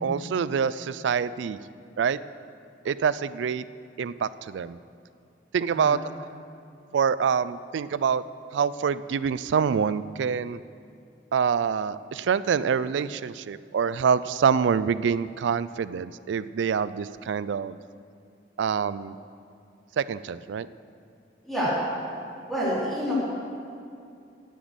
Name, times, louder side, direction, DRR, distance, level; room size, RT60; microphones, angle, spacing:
voice 1, 0.0-1.6 2.0-2.2 2.8-3.6 4.0-4.8 5.5-6.3 6.9-8.2 8.5-10.6 11.3-17.8 18.6-19.2 20.0-20.7, right 6 dB, 85° right, 16 dB, 0.3 m, -26 dB
voice 2, 5.7-6.0 21.4-21.8 22.5-23.1, equal, ahead, -9 dB, 3.5 m, -28 dB
9.3 x 8.1 x 8.1 m, 2.5 s
head